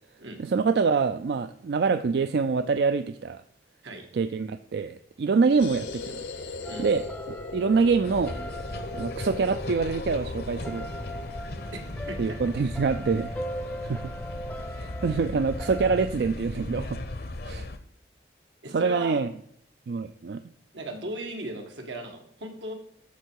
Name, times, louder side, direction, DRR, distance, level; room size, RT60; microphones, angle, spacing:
voice 1, 0.4-3.4 4.1-6.2 6.8-7.0 7.5-8.4 8.9-10.9 12.2-13.3 13.8-14.1 14.8-17.0 17.4-17.7 18.7-19.3 19.9-20.4, right 4 dB, 65° right, 11 dB, 0.3 m, -25 dB
sound 1, 5.6-12.2, left 3 dB, 85° left, 0.9 m, -39 dB
sound 2, 6.6-16.1, equal, 5° left, 0.5 m, -40 dB
sound 3, 8.0-17.8, left 2 dB, 55° left, 0.7 m, -37 dB
voice 2, 11.7-12.4 18.6-19.2 20.7-22.7, right 1 dB, 90° right, 3 dB, 1.7 m, -37 dB
13.0 x 4.6 x 4.6 m, 0.70 s
head